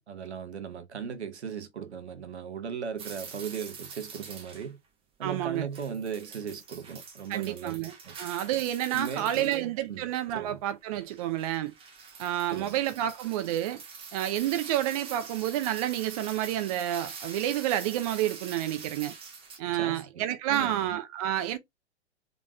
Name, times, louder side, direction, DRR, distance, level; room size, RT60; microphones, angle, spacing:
voice 1, 0.0-4.8 5.2-7.8 8.0-8.1 8.9-10.1 10.3-10.6 12.5-12.7 19.7-20.9, right 7 dB, 70° right, 1.0 m, -37 dB
sound 1, 3.0-4.7 5.7-9.7 10.2-10.3 11.0-19.6, right 5 dB, 15° right, 0.9 m, -45 dB
voice 2, 5.2-5.7 7.3-11.7 12.2-13.8 14.1-19.1 19.6-21.6, right 12 dB, 30° right, 0.5 m, -29 dB
3.8 x 3.5 x 2.4 m
figure-of-eight pair, 110°, 35 cm